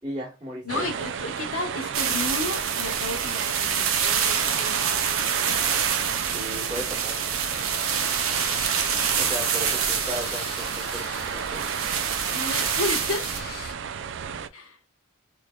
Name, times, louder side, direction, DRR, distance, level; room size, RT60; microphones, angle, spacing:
voice 1, 0.0-0.9 6.3-7.2 9.2-11.7, equal, 20° right, 1.5 m, -36 dB
voice 2, 0.6-5.8 9.8-10.0 12.3-13.3 14.5-14.8, left 2 dB, 75° left, 1.1 m, -33 dB
sound 1, 0.7-14.5, right 7 dB, 55° right, 0.3 m, -33 dB
sound 2, 1.9-13.4, right 7 dB, 70° right, 0.7 m, -27 dB
sound 3, 7.5-13.7, left 5 dB, 45° left, 0.8 m, -40 dB
4.0 x 3.2 x 2.3 m
head